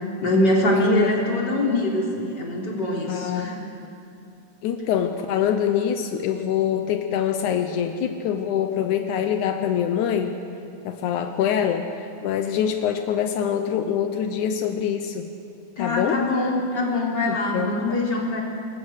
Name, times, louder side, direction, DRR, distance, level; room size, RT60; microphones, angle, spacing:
voice 1, 0.2-3.6 15.8-18.4, left 1 dB, 35° left, -2 dB, 4.1 m, -23 dB
voice 2, 0.7-1.1 3.1-3.5 4.6-10.4 10.9-15.3 15.8-16.3 17.3-18.1, left 9 dB, 85° left, 7 dB, 2.4 m, -24 dB
25.5 x 21.5 x 6.5 m, 2.9 s
omnidirectional pair, 3.4 m